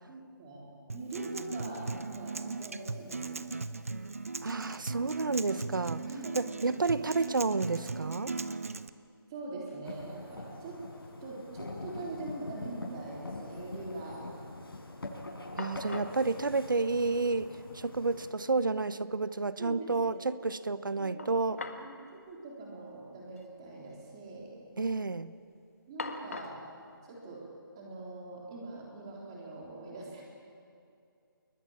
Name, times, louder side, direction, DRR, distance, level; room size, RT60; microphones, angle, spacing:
voice 1, 0.1-3.6 6.1-6.8 9.3-10.8 11.2-14.2 17.0-17.1 19.6-20.3 21.0-24.5 25.9-26.6 27.1-27.4 27.7-30.2, right 2 dB, 10° right, -3 dB, 3.5 m, -43 dB
Acoustic guitar, 0.9-8.9, right 3 dB, 40° right, 0.8 m, -38 dB
voice 2, 4.4-8.3 15.6-21.6 24.8-25.3, right 3 dB, 60° right, 14 dB, 1.1 m, -31 dB
sound 1, 9.1-9.2 9.4-10.0 10.4-11.3 11.5-11.6 15.1-15.2 15.6-16.2 17.3-17.4 17.8-17.9 21.2-21.9 22.2-22.3 23.3-23.5 23.8-24.3 24.7-25.1 26.0-26.7, left 3 dB, 35° left, 1.7 m, -43 dB
sound 2, 9.8-18.3, left 2 dB, 85° left, 7.1 m, -44 dB
29.5 x 21.0 x 8.7 m, 2.4 s
hypercardioid pair, 180°, 12 cm